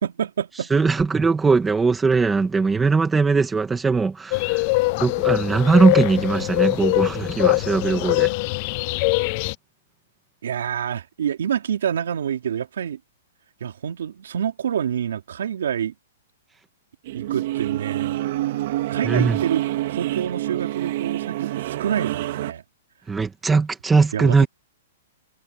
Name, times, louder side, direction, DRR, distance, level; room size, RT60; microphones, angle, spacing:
voice 1, 0.0-0.7 10.4-13.0 13.6-15.9 17.1-18.2 18.9-22.6 24.1-24.5, right 9 dB, 75° right, 3.9 m, -27 dB
voice 2, 0.7-4.7 5.0-8.3 19.0-19.4 23.1-24.5, right 4 dB, 5° right, 2.2 m, -20 dB
sound 1, 4.3-9.5, left 24 dB, 30° left, 0.3 m, -22 dB
sound 2, 17.1-22.5, right 15 dB, 45° right, 4.1 m, -27 dB
hypercardioid pair, 170°, 0 cm